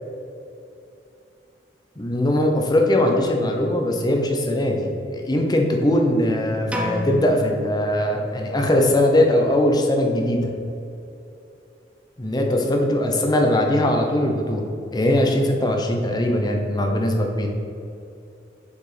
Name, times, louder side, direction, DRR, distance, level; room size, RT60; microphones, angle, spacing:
voice 1, 2.0-10.5 12.2-14.6 14.9-17.5, left 1 dB, 25° left, 2 dB, 0.9 m, -20 dB
sound 1, 6.7-8.6, left 1 dB, 5° right, 0.6 m, -32 dB
6.9 x 4.9 x 5.1 m, 2.7 s
head